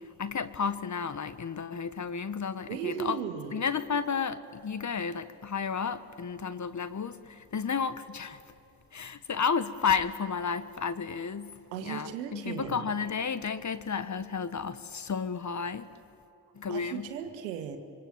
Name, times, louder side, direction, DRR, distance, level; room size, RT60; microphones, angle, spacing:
voice 1, 0.0-3.2 3.5-8.4 8.9-15.9 16.5-17.1, left 6 dB, 35° left, 1.4 m, -32 dB
voice 2, 2.5-3.6 11.7-12.8 16.7-17.8, right 8 dB, 85° right, 1.6 m, -36 dB
27.0 x 24.5 x 7.5 m
hypercardioid pair, 45°, 49 cm